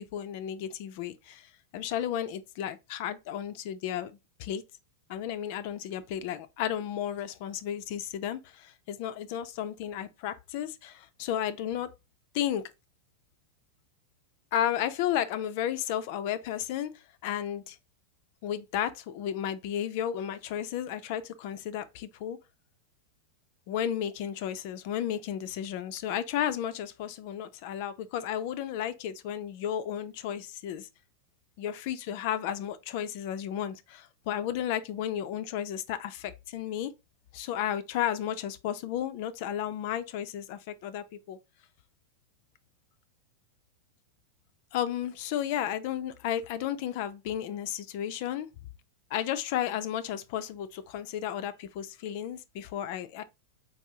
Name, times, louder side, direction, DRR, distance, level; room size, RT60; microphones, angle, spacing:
voice 1, 0.0-4.1 4.4-4.6 5.1-11.9 12.3-12.7 14.5-17.8 18.4-22.4 23.7-30.9 31.6-36.9 37.3-41.4 44.7-48.5 49.1-53.2, left 10 dB, 50° left, 0.3 m, -33 dB
4.5 x 2.6 x 2.7 m
figure-of-eight pair, 90°, 0 cm